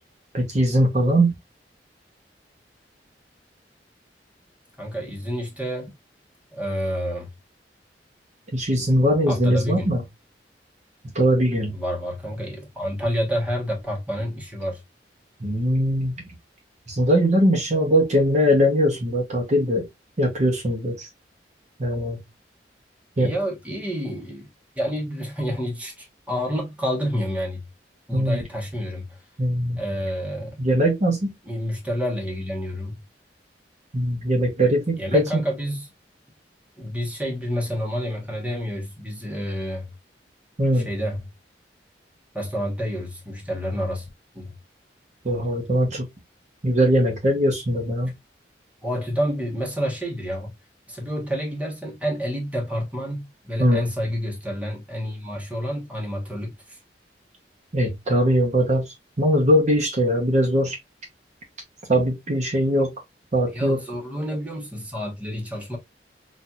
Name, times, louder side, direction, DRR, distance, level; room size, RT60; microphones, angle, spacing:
voice 1, 0.3-1.3 8.5-10.0 11.1-11.7 15.4-16.1 16.9-19.8 20.2-21.1 21.8-22.2 23.2-23.3 28.1-28.4 29.4-29.8 30.6-31.3 33.9-35.2 40.6-40.9 45.2-46.1 46.6-48.1 53.6-53.8 57.7-60.7 61.9-62.9 63.3-63.8, equal, 40° right, 0.8 m, -21 dB
voice 2, 4.8-5.9 6.5-7.3 9.3-9.9 11.7-14.8 23.2-24.5 24.8-27.6 28.1-29.2 29.8-30.6 31.5-33.0 35.0-35.9 36.8-39.9 40.7-41.3 42.3-44.1 44.3-44.5 48.8-50.5 50.9-56.8 63.5-65.8, equal, 10° right, 1.1 m, -29 dB
4.1 x 2.5 x 2.3 m
head